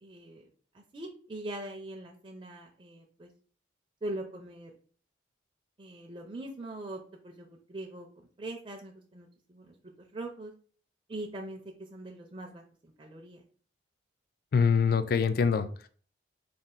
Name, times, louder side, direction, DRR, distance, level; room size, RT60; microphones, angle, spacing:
voice 1, 0.0-0.5 0.7-3.3 4.0-4.7 5.8-8.1 8.4-9.8 10.1-10.5 11.1-13.4, right 1 dB, 30° right, 1 dB, 0.4 m, -42 dB
voice 2, 14.5-15.9, left 5 dB, 50° left, 11 dB, 0.3 m, -25 dB
4.2 x 2.4 x 3.7 m, 0.44 s
head